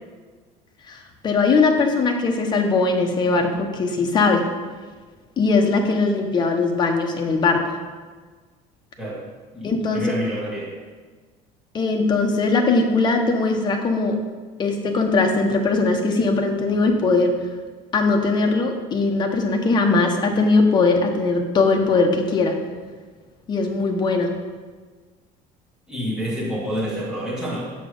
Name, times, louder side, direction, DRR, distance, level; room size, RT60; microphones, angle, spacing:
voice 1, 0.9-4.5 5.4-7.8 9.6-10.0 11.7-14.2 14.6-17.3 17.9-22.6 23.5-24.3, left 3 dB, 30° left, 3 dB, 1.0 m, -20 dB
voice 2, 9.5-10.8 25.9-27.7, equal, 5° right, -7 dB, 2.5 m, -28 dB
7.5 x 6.0 x 5.4 m, 1.4 s
cardioid pair, 155°, 16 cm